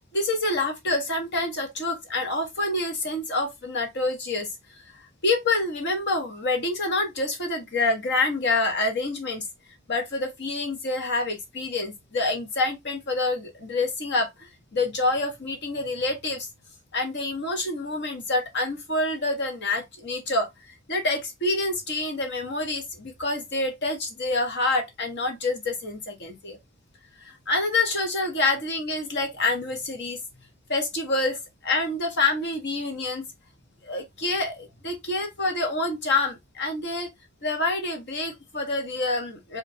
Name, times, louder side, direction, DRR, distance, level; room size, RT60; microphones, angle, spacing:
voice 1, 0.1-4.5 4.9-9.4 9.9-16.5 16.9-26.6 27.2-30.2 30.7-33.3 33.8-37.1 37.4-39.6, left 2 dB, 55° left, 1.5 m, -27 dB
5.0 x 2.8 x 2.8 m
head